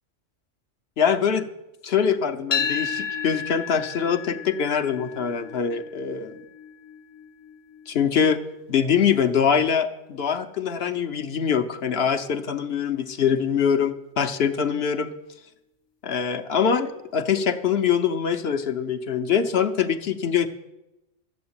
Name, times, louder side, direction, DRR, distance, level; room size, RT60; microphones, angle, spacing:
voice 1, 1.0-1.5 1.8-6.3 7.9-8.4 8.7-15.1 16.0-20.5, left 7 dB, 55° left, 8 dB, 1.0 m, -23 dB
sound 1, 2.5-10.7, left 6 dB, 40° left, 0.4 m, -34 dB
13.0 x 7.3 x 8.7 m, 0.94 s
omnidirectional pair, 1.3 m